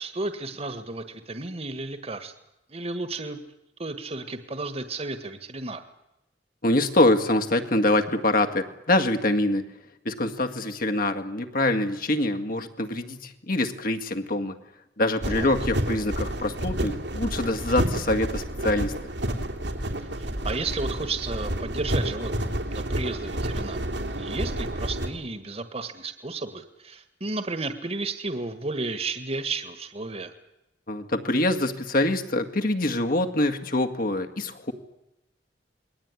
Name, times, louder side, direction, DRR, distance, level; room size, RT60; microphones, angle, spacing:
voice 1, 0.0-2.3 2.7-3.4 3.8-5.8 15.2-15.5 20.2-23.8 24.1-30.3, right 3 dB, 35° right, 10 dB, 1.7 m, -33 dB
voice 2, 6.6-9.7 10.1-14.6 15.0-19.0 30.9-34.7, left 1 dB, 55° left, 6 dB, 2.0 m, -25 dB
sound 1, 15.2-25.1, right 1 dB, 85° right, 3.3 m, -30 dB
28.0 x 21.0 x 9.8 m, 0.92 s
head